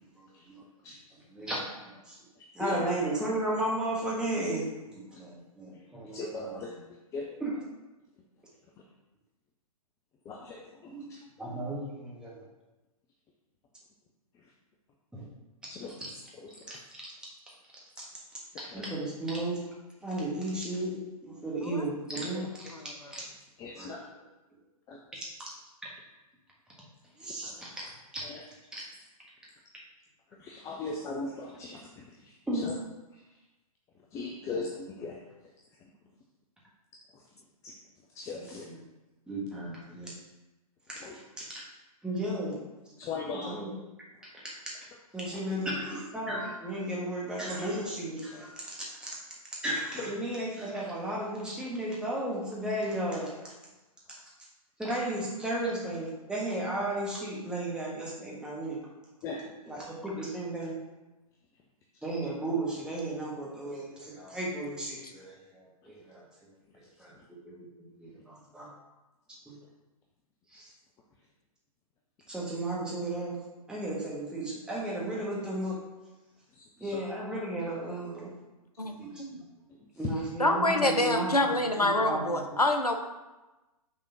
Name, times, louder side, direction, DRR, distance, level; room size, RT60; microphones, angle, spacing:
voice 1, 0.2-0.6 1.3-2.2 2.5-6.6 7.4-7.5 10.9-11.1 11.4-12.3 15.1-15.2 16.0-16.1 16.7-16.8 18.0-18.1 18.7-19.6 20.0-20.9 21.2-22.5 23.1-23.3 23.8-23.9 27.2-27.5 27.8-27.9 28.1-28.2 28.7-28.8 32.5-32.6 38.3-38.8 39.3-40.1 40.9-41.0 41.4-41.6 42.0-42.6 43.4-43.7 44.4-44.5 45.1-49.1 49.6-53.3 54.8-58.8 59.7-60.7 62.0-66.2 67.0-67.1 67.4-67.7 68.0-68.7 69.5-69.6 70.5-70.7 72.3-73.4 73.7-75.8 76.8-78.3 79.0-79.1 80.0-81.5 82.0-82.5, right 1 dB, 5° right, -5 dB, 1.5 m, -34 dB
voice 2, 6.1-6.7 7.1-7.3 10.3-11.2 15.7-15.9 16.4-16.8 18.7-18.8 23.6-24.0 24.9-25.2 27.4-27.5 28.2-28.4 30.4-32.3 32.6-32.7 34.1-35.2 37.1-37.2 37.6-37.7 38.1-38.7 41.0-41.2 43.0-43.6 45.3-45.4 50.8-50.9 59.2-59.9 76.5-77.0, left 3 dB, 15° left, -1 dB, 0.5 m, -39 dB
voice 3, 22.7-23.1 65.0-65.1 78.8-79.4 80.4-82.9, left 1 dB, 90° left, 5 dB, 0.8 m, -27 dB
6.0 x 3.6 x 5.6 m, 1.1 s
figure-of-eight pair, 115°, 19 cm